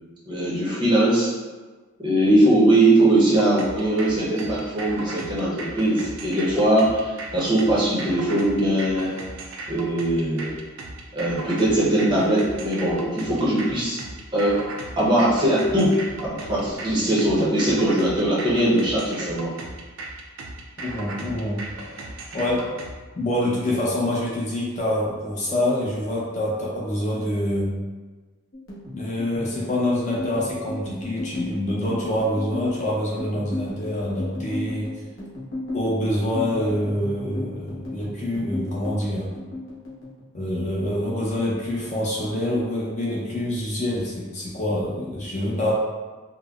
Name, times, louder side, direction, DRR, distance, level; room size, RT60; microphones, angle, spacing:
voice 1, 0.3-1.3 2.0-9.1 9.7-10.5 11.1-14.0 14.3-14.6 15.0-16.0 16.3-19.5, right 1 dB, 20° right, -7 dB, 0.6 m, -20 dB
sound 1, 3.3-22.9, right 2 dB, 65° right, 0.4 m, -37 dB
voice 2, 20.8-21.6 22.3-22.7 23.1-27.7 28.9-34.9 35.7-39.3 40.3-45.7, left 1 dB, 35° left, -5 dB, 0.6 m, -26 dB
sound 2, 28.5-41.1 41.3-42.4 42.7-43.0 43.3-44.0, left 2 dB, 65° left, 0.9 m, -35 dB
3.7 x 2.0 x 2.3 m, 1.3 s
head